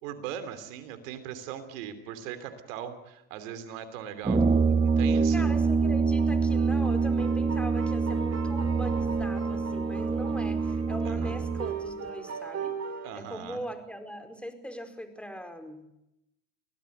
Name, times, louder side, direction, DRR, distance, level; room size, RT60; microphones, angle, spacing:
voice 1, 0.0-4.4 5.0-5.5 11.0-11.4 13.0-13.6, right 9 dB, 90° right, 10 dB, 3.1 m, -39 dB
Brass instrument, 4.2-11.7, right 4 dB, 15° right, 1.5 m, -26 dB
sound 1, 4.3-13.1, right 7 dB, 40° right, 3.3 m, -39 dB
voice 2, 5.3-12.8 13.1-15.8, equal, 5° left, 7 dB, 4.9 m, -40 dB
24.5 x 17.5 x 8.0 m, 0.85 s
supercardioid pair, 75°, 38 cm